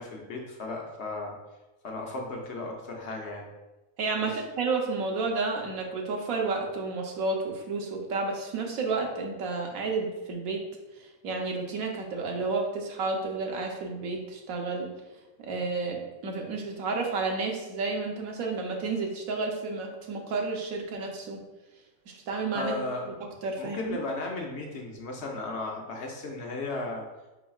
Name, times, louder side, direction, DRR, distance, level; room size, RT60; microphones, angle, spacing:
voice 1, 0.0-1.4 1.8-3.5 4.2-4.4 22.5-23.1 23.6-27.0, left 2 dB, 60° left, 1 dB, 0.9 m, -35 dB
voice 2, 4.0-10.6 11.0-14.9 15.4-21.4 22.1-22.7 23.0-23.1 23.4-24.0, right 3 dB, 85° right, 1 dB, 1.2 m, -31 dB
4.7 x 4.4 x 2.3 m, 1.1 s
omnidirectional pair, 1.4 m